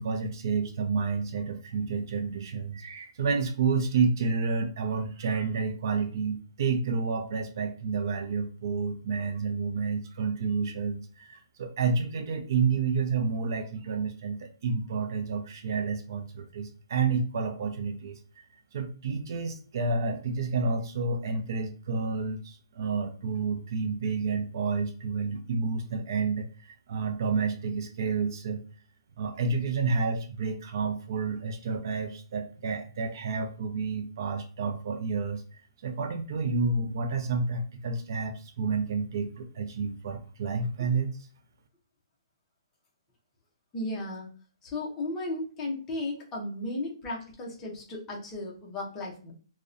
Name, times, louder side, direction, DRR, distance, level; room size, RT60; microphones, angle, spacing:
voice 1, 0.0-18.2 18.7-28.6 29.2-35.4 35.8-41.1, right 4 dB, 45° right, 4 dB, 0.3 m, -30 dB
voice 2, 43.7-44.3 44.6-49.3, left 2 dB, 15° left, -2 dB, 0.5 m, -35 dB
2.5 x 2.0 x 2.4 m, 0.40 s
hypercardioid pair, 170°, 3 cm